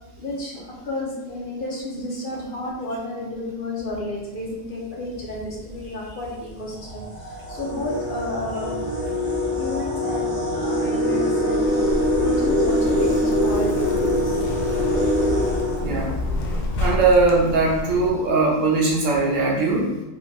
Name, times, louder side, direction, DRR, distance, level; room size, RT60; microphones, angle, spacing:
voice 1, 0.2-0.6 0.8-7.0 7.5-8.7 9.5-11.8 12.2-14.4 14.7-15.1, left 1 dB, 50° left, -3 dB, 0.8 m, -31 dB
sound 1, 5.1-5.4 6.2-6.3 6.8-16.5, equal, 20° left, 1.4 m, -23 dB
Zipper (clothing), 11.4-18.1, left 2 dB, 90° left, 1.0 m, -29 dB
voice 2, 15.8-16.1 16.8-19.9, right 3 dB, 85° right, -2 dB, 1.2 m, -20 dB
3.2 x 2.9 x 3.2 m, 1.0 s
omnidirectional pair, 1.3 m